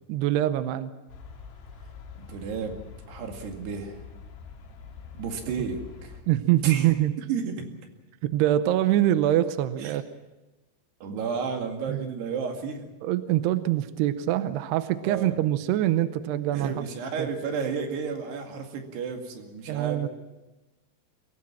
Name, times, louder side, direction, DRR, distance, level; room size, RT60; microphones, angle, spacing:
voice 1, 0.1-0.9 6.3-7.1 8.3-10.0 11.9-12.1 13.0-16.9 17.2-17.3 19.7-20.1, right 13 dB, 80° right, 11 dB, 2.4 m, -24 dB
sound 1, 1.1-6.2, left 5 dB, 75° left, 4.8 m, -45 dB
voice 2, 2.2-4.0 5.1-6.1 6.6-6.9 7.3-7.7 9.8-10.0 11.0-12.9 15.0-15.4 16.5-20.1, right 5 dB, 60° right, 3 dB, 4.1 m, -32 dB
23.5 x 17.5 x 7.5 m, 1.1 s
omnidirectional pair, 5.7 m